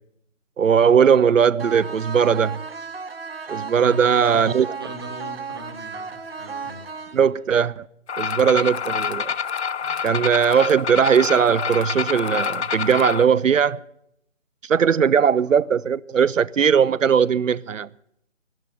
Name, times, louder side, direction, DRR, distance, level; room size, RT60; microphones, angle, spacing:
voice 1, 0.6-2.6 3.5-4.7 7.1-7.9 8.2-9.3 10.0-13.8 14.6-17.9, right 7 dB, 85° right, 0.6 m, -19 dB
sound 1, 1.6-7.6, right 5 dB, 50° right, 1.0 m, -35 dB
voice 2, 3.8-6.8 9.8-10.3, right 1 dB, 20° right, 1.1 m, -40 dB
sound 2, 8.1-13.2, left 6 dB, 60° left, 0.5 m, -27 dB
12.5 x 11.0 x 9.0 m
figure-of-eight pair, 160°, 38 cm